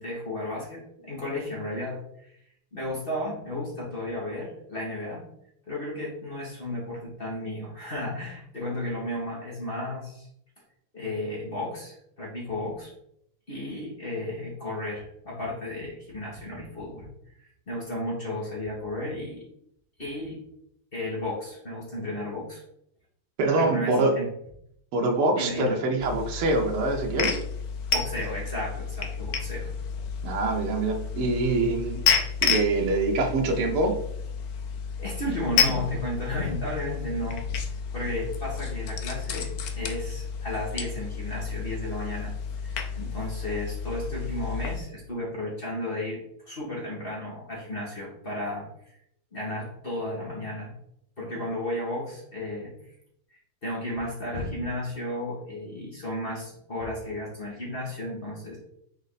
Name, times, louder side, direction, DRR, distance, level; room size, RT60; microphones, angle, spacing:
voice 1, 0.0-2.4 2.7-5.2 5.7-10.3 10.9-12.9 13.5-17.1 17.4-19.5 20.0-20.4 20.9-22.6 23.5-24.3 25.4-25.7 27.9-29.7 35.0-37.4 37.9-42.3 42.6-46.2 46.4-48.7 49.3-50.7 51.2-52.7 53.6-58.6, left 1 dB, 25° left, -5 dB, 1.9 m, -33 dB
voice 2, 23.4-24.2 24.9-27.4 30.2-34.0, right 2 dB, 85° right, 1 dB, 1.9 m, -25 dB
sound 1, 26.0-44.8, left 6 dB, 65° left, 0.9 m, -31 dB
6.5 x 4.1 x 4.1 m, 0.73 s
omnidirectional pair, 2.4 m